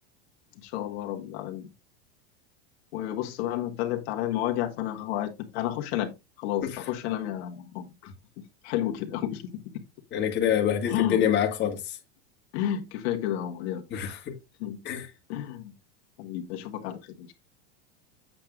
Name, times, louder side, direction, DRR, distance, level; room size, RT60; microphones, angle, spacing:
voice 1, 0.6-1.7 2.9-6.1 6.4-8.1 8.6-9.5 9.7-9.8 10.9-11.2 12.5-13.8 14.6-14.8 15.3-15.7 16.2-17.3, left 12 dB, 70° left, 1.7 m, -31 dB
voice 2, 10.1-12.0 13.9-14.4 14.8-15.1, left 9 dB, 30° left, 1.8 m, -26 dB
8.8 x 7.6 x 2.5 m
supercardioid pair, 145°, 33 cm